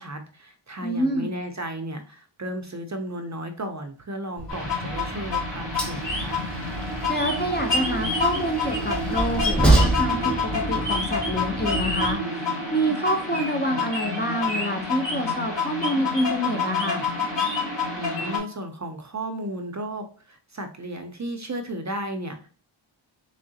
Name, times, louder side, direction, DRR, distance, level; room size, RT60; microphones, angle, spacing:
voice 1, 0.0-6.4 18.0-22.5, right 1 dB, 35° right, 5 dB, 0.5 m, -34 dB
voice 2, 0.8-1.3 7.1-17.1, equal, 20° left, 3 dB, 0.5 m, -27 dB
Train, 4.4-12.1, right 2 dB, ahead, 0.9 m, -27 dB
sound 1, 4.5-18.4, left 3 dB, 55° left, 1.5 m, -28 dB
3.6 x 3.2 x 2.7 m, 0.39 s
wide cardioid pair, 70°, 49 cm